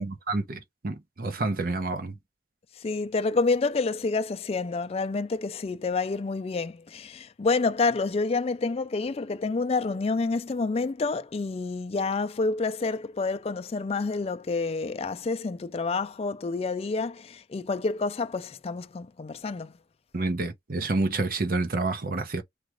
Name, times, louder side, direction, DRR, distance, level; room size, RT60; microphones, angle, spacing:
voice 1, 0.0-2.1 20.1-22.4, right 3 dB, 55° right, 0.8 m, -29 dB
voice 2, 2.8-19.7, left 3 dB, 35° left, 0.4 m, -28 dB
4.8 x 2.4 x 3.0 m
head